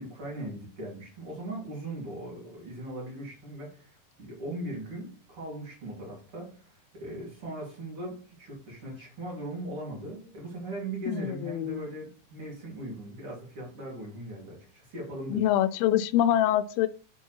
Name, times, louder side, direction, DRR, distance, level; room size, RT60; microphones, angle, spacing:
voice 1, 0.0-15.4, right 1 dB, 40° right, -4 dB, 3.6 m, -39 dB
voice 2, 11.1-11.8 15.3-16.9, left 11 dB, 85° left, 13 dB, 2.4 m, -25 dB
7.0 x 4.5 x 4.5 m, 0.39 s
omnidirectional pair, 4.2 m